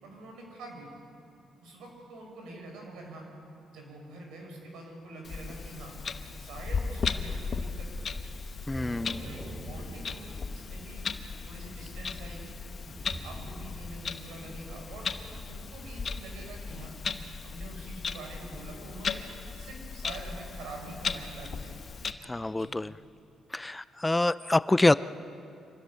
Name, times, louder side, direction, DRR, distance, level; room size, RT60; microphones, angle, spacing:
voice 1, 0.0-1.0 1.6-3.3 3.7-5.9 6.4-8.1 9.0-11.1 11.4-12.5 13.2-15.1 15.4-17.0 17.4-19.3 19.6-21.8 22.5-22.7, right 2 dB, 85° right, 1 dB, 5.6 m, -45 dB
Clock, 5.2-22.1, left 5 dB, 45° left, 1.1 m, -37 dB
voice 2, 8.7-9.2 22.3-22.9 23.5-24.9, left 2 dB, 15° left, 16 dB, 0.4 m, -26 dB
Thunder / Rain, 8.7-18.7, right 1 dB, 35° right, 4.5 m, -47 dB
25.5 x 15.5 x 6.9 m, 2.7 s
cardioid pair, 90°, 0 cm